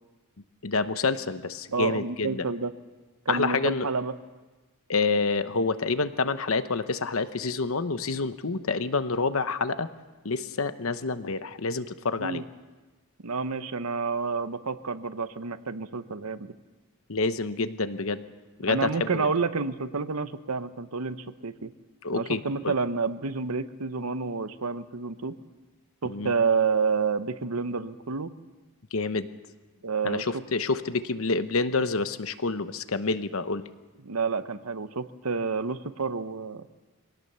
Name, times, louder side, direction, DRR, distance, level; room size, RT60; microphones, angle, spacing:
voice 1, 0.6-2.4 3.3-3.9 4.9-9.9 10.2-12.4 17.1-18.2 18.6-19.3 22.0-22.7 26.0-26.3 28.9-29.3 30.0-33.6, left 3 dB, 65° left, 11 dB, 1.0 m, -28 dB
voice 2, 1.7-2.7 3.3-4.1 12.2-12.4 13.2-16.5 18.7-21.7 22.1-25.4 26.0-28.3 29.8-30.3 34.0-36.7, right 4 dB, 80° right, 11 dB, 1.0 m, -29 dB
24.0 x 18.0 x 6.9 m, 1.2 s
head